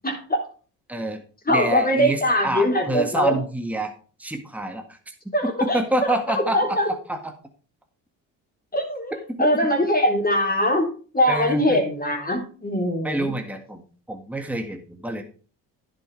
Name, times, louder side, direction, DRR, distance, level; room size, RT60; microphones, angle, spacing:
voice 1, 0.0-0.4 1.5-3.4 5.3-6.1 6.5-6.9 8.7-9.1 9.4-10.9 11.1-13.3, equal, 20° left, 1 dB, 3.7 m, -22 dB
voice 2, 0.9-1.2 1.5-3.9 4.2-5.1 5.4-7.3 9.4-9.5 11.3-11.8 13.0-15.2, right 1 dB, 5° right, 5 dB, 1.8 m, -27 dB
10.5 x 8.5 x 3.3 m, 0.39 s
supercardioid pair, 60°, 41 cm